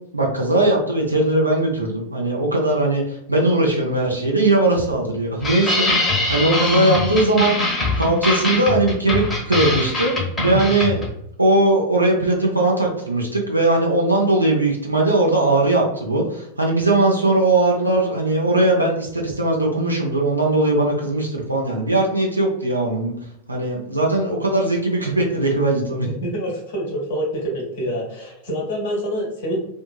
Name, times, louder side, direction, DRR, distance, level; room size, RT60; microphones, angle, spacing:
voice 1, 0.1-3.0 3.3-7.6 8.0-11.0 11.4-23.1 23.5-26.1, right 2 dB, 85° right, -1 dB, 0.5 m, -19 dB
sound 1, 5.4-11.1, left 2 dB, 15° left, 1.0 m, -22 dB
voice 2, 26.1-29.7, equal, 55° left, -2 dB, 1.1 m, -26 dB
2.7 x 2.6 x 2.3 m, 0.75 s
figure-of-eight pair, 90°, 0 cm